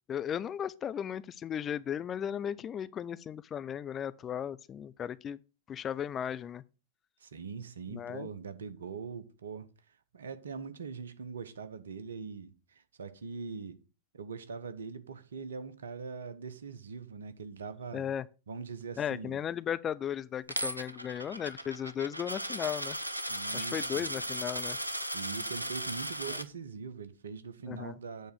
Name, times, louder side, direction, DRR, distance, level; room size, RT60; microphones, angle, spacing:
voice 1, 0.1-5.4 5.7-6.6 7.9-8.3 17.9-18.3 19.0-23.0 23.5-24.8 26.3-26.4 27.7-27.9, left 9 dB, 25° left, 0.4 m, -36 dB
voice 2, 7.2-9.7 10.1-13.8 14.1-18.0 18.5-19.4 23.3-24.0 25.1-28.3, right 5 dB, 65° right, 0.9 m, -42 dB
Coin (dropping), 20.5-26.4, right 1 dB, 85° right, 0.6 m, -36 dB
8.4 x 3.9 x 6.3 m
figure-of-eight pair, 95°, 0 cm